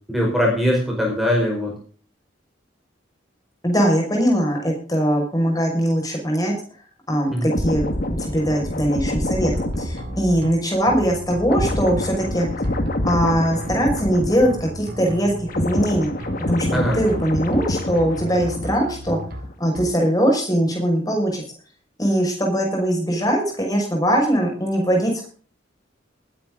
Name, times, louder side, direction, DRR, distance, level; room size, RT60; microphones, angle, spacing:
voice 1, 0.1-1.7 7.3-7.5 16.7-17.0, equal, ahead, -1 dB, 5.0 m, -21 dB
voice 2, 3.6-6.6 7.1-12.5 13.0-16.1 16.5-19.2 19.6-21.4 22.0-25.3, equal, 20° left, 1 dB, 5.7 m, -21 dB
sound 1, 7.5-15.0 15.2-19.0 19.3-19.5, left 1 dB, 45° left, 1.9 m, -27 dB
sound 2, 9.3-10.5 10.9-12.3 12.6-14.1 14.4-15.9 16.2-17.6 18.0-19.4 19.7-19.9, equal, 50° right, 2.4 m, -34 dB
19.5 x 10.5 x 3.9 m, 0.41 s
head